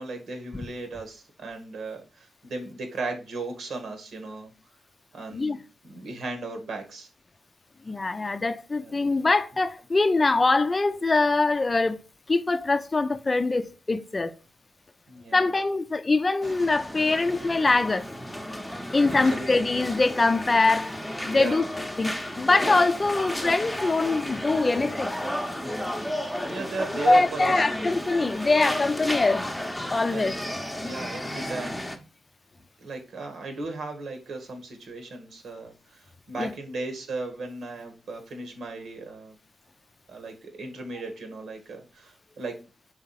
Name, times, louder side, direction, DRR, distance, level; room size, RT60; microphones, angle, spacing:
voice 1, 0.0-4.5 5.1-5.6 5.8-7.1 8.8-8.9 15.1-15.4 19.1-19.5 21.3-21.7 26.5-28.0 30.1-30.4 30.8-31.9 32.8-39.4 40.1-42.5, right 3 dB, 75° right, 1.6 m, -36 dB
voice 2, 7.8-12.0 12.3-14.3 15.3-18.0 18.9-20.9 21.2-21.6 22.0-25.1 27.1-29.5 29.9-30.3 36.4-36.5, left 3 dB, 30° left, 0.5 m, -23 dB
sound 1, 16.4-32.0, left 1 dB, 5° left, 0.9 m, -33 dB
4.8 x 3.6 x 5.6 m
cardioid pair, 90°, 0 cm